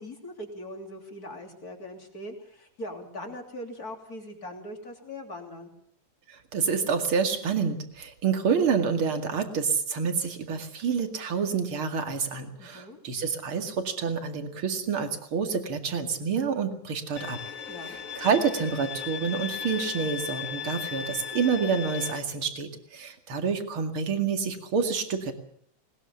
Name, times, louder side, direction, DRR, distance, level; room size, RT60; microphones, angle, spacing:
voice 1, 0.0-5.7 12.6-13.0 17.7-18.0, left 1 dB, 30° left, 3 dB, 3.5 m, -41 dB
voice 2, 6.3-17.4 18.2-25.3, right 6 dB, 45° right, 6 dB, 2.8 m, -28 dB
Bowed string instrument, 17.2-22.2, left 8 dB, 60° left, 0.8 m, -36 dB
20.5 x 20.0 x 7.1 m, 0.63 s
omnidirectional pair, 3.4 m